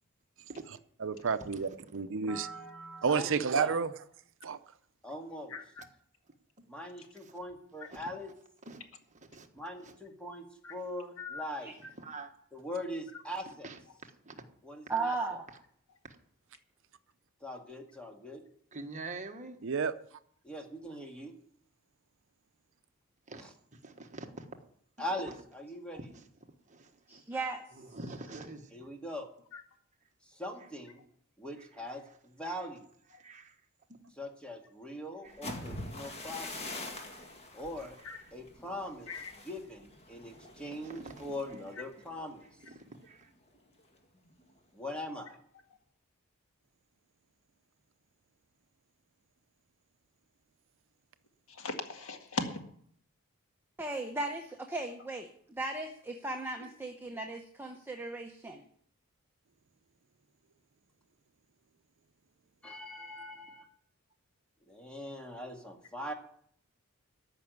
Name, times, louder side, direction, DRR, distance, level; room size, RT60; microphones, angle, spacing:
voice 1, 1.0-2.5 3.0-3.9 4.4-4.6 19.6-19.9, right 5 dB, 60° right, 12 dB, 0.6 m, -30 dB
voice 2, 2.3-3.8 5.0-5.6 6.7-8.3 9.5-11.7 12.5-13.7 14.6-15.2 17.4-18.4 20.4-21.3 23.3-23.5 25.0-26.1 28.7-29.3 30.2-31.0 31.4-32.9 34.2-36.8 37.5-38.0 38.3-42.4 44.7-45.4 62.6-63.6 64.7-66.1, left 1 dB, 5° left, 2 dB, 1.8 m, -41 dB
voice 3, 5.5-5.8 10.6-10.7 11.2-11.4 29.5-29.6 38.0-38.2 39.1-39.3 51.5-52.6, left 3 dB, 65° left, 4 dB, 2.0 m, -38 dB
voice 4, 12.0-12.3 13.6-13.8 14.3-14.4 18.7-19.6 23.3-23.4 23.8-24.5 26.0-26.1 26.7-27.2 27.9-28.9 32.5-32.6 33.2-33.5 35.2-35.3 36.4-36.6 40.7-41.1 42.9-43.3, right 3 dB, 35° right, 4 dB, 1.4 m, -45 dB
voice 5, 14.9-15.5 27.1-27.6 53.8-58.6, right 3 dB, 10° right, 3 dB, 0.8 m, -36 dB
sound 1, 35.3-43.1 43.5-43.8 44.2-44.6, left 2 dB, 30° left, 1.9 m, -45 dB
14.0 x 5.9 x 9.4 m, 0.64 s
head